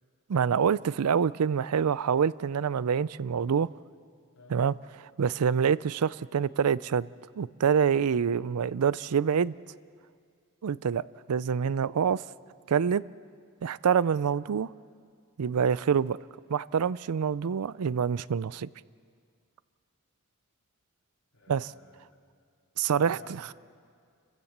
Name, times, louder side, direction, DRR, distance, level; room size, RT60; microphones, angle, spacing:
voice 1, 0.3-3.7 4.5-4.7 5.2-7.1 7.4-9.5 10.6-11.0 11.3-12.2 12.7-13.0 13.6-14.7 15.4-16.2 16.5-18.7 21.5-21.7 22.8-23.2, right 7 dB, 85° right, 19 dB, 0.4 m, -26 dB
voice 2, 4.3-4.7 21.3-22.2 22.9-23.5, left 2 dB, 80° left, -1 dB, 3.3 m, -52 dB
29.0 x 15.5 x 7.3 m, 2.2 s
head